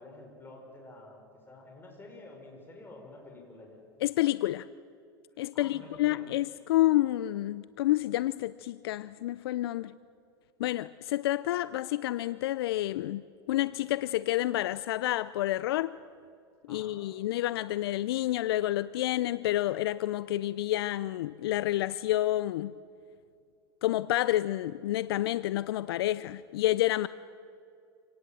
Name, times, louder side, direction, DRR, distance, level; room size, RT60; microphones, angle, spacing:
voice 1, 0.0-3.8 5.5-6.3 16.7-17.0, left 2 dB, 15° left, 6.2 m, -49 dB
voice 2, 4.0-4.7 5.4-9.9 10.6-13.2 13.5-15.9 16.7-22.7 23.8-27.1, left 15 dB, 75° left, 0.5 m, -29 dB
27.5 x 18.5 x 7.7 m
hypercardioid pair, 100°, 13 cm